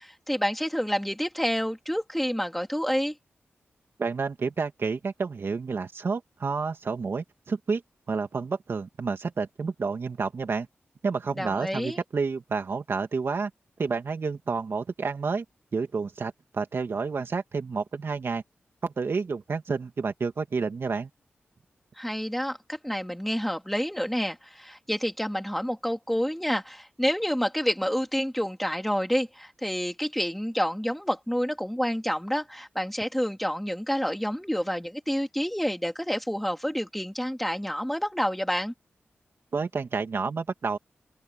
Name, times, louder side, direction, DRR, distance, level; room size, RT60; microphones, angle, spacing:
voice 1, 0.0-3.1 11.4-12.0 21.9-38.7, equal, 5° left, 3.3 m, -28 dB
voice 2, 4.0-7.8 8.1-10.7 11.0-13.5 13.8-15.4 15.7-18.4 18.8-21.1 39.5-40.8, right 4 dB, 60° right, 2.3 m, -30 dB
open air
cardioid pair, 55°, 5 cm